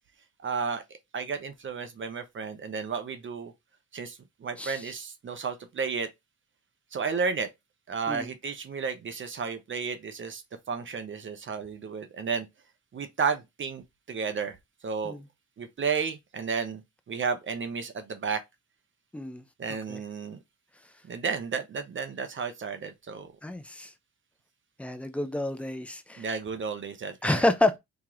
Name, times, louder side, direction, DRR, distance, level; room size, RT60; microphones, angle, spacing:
voice 1, 0.4-0.8 1.1-3.5 3.9-6.1 6.9-7.5 7.9-10.4 10.7-12.5 12.9-14.6 14.8-15.2 15.6-16.8 17.1-18.4 19.6-20.4 21.1-23.3 26.2-27.5, right 5 dB, 40° right, 0.8 m, -32 dB
voice 2, 23.4-23.9 24.8-26.2 27.2-27.8, left 2 dB, 5° left, 0.6 m, -28 dB
3.0 x 2.9 x 3.7 m
cardioid pair, 90°, 30 cm